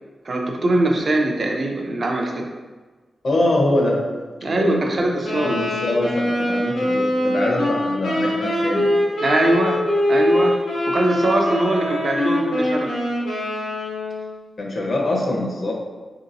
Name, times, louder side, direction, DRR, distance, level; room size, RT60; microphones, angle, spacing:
voice 1, 0.2-2.5 4.4-5.6 9.2-9.8 10.1-10.5 10.9-13.0, right 2 dB, 45° right, 1 dB, 0.4 m, -21 dB
voice 2, 3.2-4.0 4.5-8.9 14.6-15.7, left 1 dB, 50° left, -2 dB, 0.7 m, -23 dB
Wind instrument woodwind instrument, 5.2-14.3, left 1 dB, 75° left, 1.2 m, -23 dB
3.7 x 2.8 x 2.5 m, 1.3 s
wide cardioid pair, 105°, 0 cm